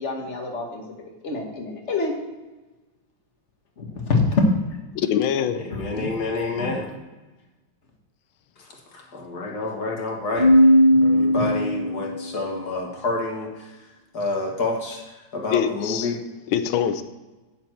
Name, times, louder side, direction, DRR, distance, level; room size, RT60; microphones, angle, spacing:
voice 1, 0.0-2.1 3.8-4.2 5.7-6.1 6.6-6.7 10.3-10.4 10.9-11.1, left 4 dB, 35° left, 1.7 m, -29 dB
voice 2, 4.9-5.6 15.5-16.1 16.5-17.0, left 9 dB, 90° left, 1.5 m, -23 dB
voice 3, 5.6-6.9 8.9-10.5 11.0-13.7 14.1-16.1, left 2 dB, 55° left, 2.1 m, -28 dB
Keyboard (musical), 10.4-12.2, equal, 65° right, 2.0 m, -17 dB
9.2 x 7.0 x 4.5 m
omnidirectional pair, 2.2 m